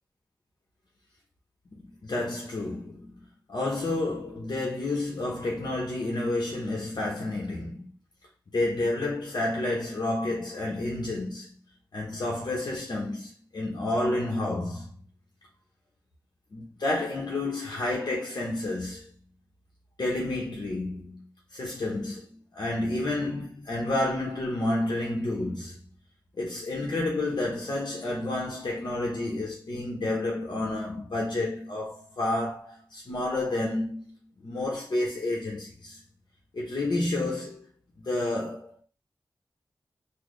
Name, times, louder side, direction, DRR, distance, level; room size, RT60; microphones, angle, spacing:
voice 1, 1.7-3.1 3.5-7.9 8.5-11.5 11.9-14.9 16.5-19.1 20.0-25.8 26.4-34.1 34.4-36.0 36.5-37.7 38.0-38.8, left 2 dB, 80° left, 1.0 m, -30 dB
4.2 x 2.3 x 3.2 m
wide cardioid pair, 70°, 7 cm